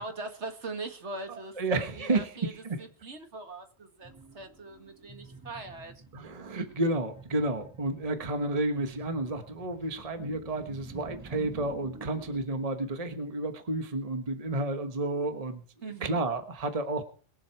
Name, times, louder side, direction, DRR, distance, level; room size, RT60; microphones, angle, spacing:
voice 1, 0.0-2.5 2.8-5.9 15.8-16.2, right 3 dB, 65° right, 6 dB, 2.0 m, -41 dB
voice 2, 1.3-2.8 6.1-15.6 16.0-17.0, right 2 dB, 30° right, 7 dB, 1.3 m, -31 dB
sound 1, 4.0-12.5, right 2 dB, 15° right, 1.8 m, -49 dB
22.0 x 7.4 x 4.7 m, 0.43 s
omnidirectional pair, 1.3 m